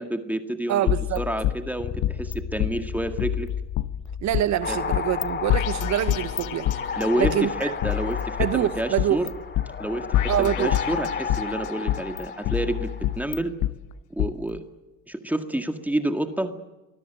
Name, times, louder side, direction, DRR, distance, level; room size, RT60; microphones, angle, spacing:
voice 1, 0.0-3.5 4.7-4.8 7.0-9.3 9.8-12.9 13.2-13.5 14.1-14.6 15.1-16.5, right 1 dB, 5° right, 7 dB, 2.0 m, -29 dB
voice 2, 0.7-1.2 4.2-6.6 7.2-7.7 8.4-9.2 10.3-10.7, right 12 dB, 70° right, 13 dB, 1.1 m, -25 dB
sound 1, 0.9-2.3 2.6-2.7 3.2-4.4 4.9-5.2 5.5-7.3 7.8-9.3 9.5-9.7 10.1-11.5 11.9-13.7 14.2-14.3, left 13 dB, 80° left, 1.2 m, -26 dB
Bass guitar, 1.8-11.6, left 7 dB, 50° left, 1.9 m, -40 dB
sound 2, 4.6-13.3, left 5 dB, 35° left, 2.7 m, -33 dB
26.0 x 21.0 x 9.2 m, 1.1 s
cardioid pair, 100°, 30 cm